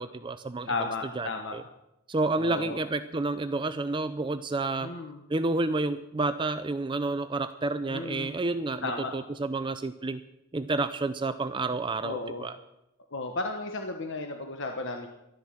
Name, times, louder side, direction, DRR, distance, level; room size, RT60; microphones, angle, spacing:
voice 1, 0.0-0.7 1.2-1.6 2.1-4.9 5.3-10.2 10.5-12.6, right 3 dB, 20° right, 12 dB, 0.4 m, -30 dB
voice 2, 0.7-1.6 2.4-2.8 4.8-5.2 7.9-8.3 8.8-9.1 12.0-12.5 13.1-15.1, left 3 dB, 55° left, 4 dB, 1.1 m, -34 dB
12.5 x 11.0 x 7.5 m, 0.88 s
head